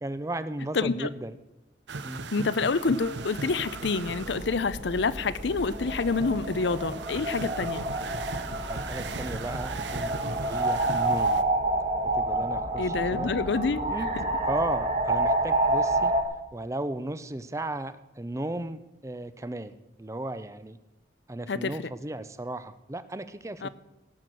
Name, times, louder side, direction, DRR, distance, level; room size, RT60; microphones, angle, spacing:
voice 1, 0.0-1.4 2.0-2.3 8.7-11.4 12.0-13.3 13.9-14.1 14.4-16.1 16.5-20.8 21.3-23.7, right 1 dB, 15° right, 13 dB, 0.5 m, -35 dB
voice 2, 0.7-1.1 2.3-7.9 12.8-13.8 21.5-21.7 23.6-23.7, left 4 dB, 75° left, 16 dB, 0.6 m, -27 dB
sound 1, 1.9-11.4, right 4 dB, 75° right, 0.7 m, -39 dB
sound 2, 3.0-16.2, right 2 dB, 35° right, 1.4 m, -29 dB
17.0 x 6.0 x 7.7 m, 0.98 s
head